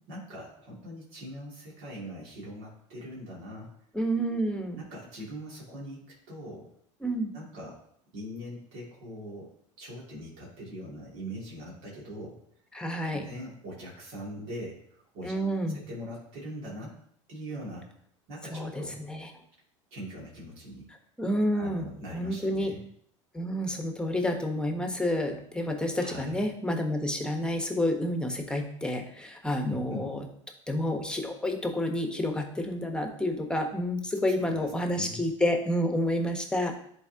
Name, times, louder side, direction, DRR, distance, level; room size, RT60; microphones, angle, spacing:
voice 1, 0.1-3.7 4.7-6.7 7.3-7.8 8.1-9.5 9.8-12.4 12.9-15.4 15.7-16.9 17.3-17.9 18.3-19.0 19.9-20.9 21.5-22.8 26.0-26.4 29.6-30.1 34.4-35.2, equal, 65° right, -5 dB, 2.6 m, -42 dB
voice 2, 3.9-4.8 7.0-7.3 12.7-13.2 15.2-15.8 18.5-19.2 21.2-22.7 23.3-30.2 30.7-36.8, left 1 dB, 5° left, 4 dB, 1.2 m, -29 dB
10.5 x 4.1 x 2.9 m, 0.66 s
hypercardioid pair, 90°, 16 cm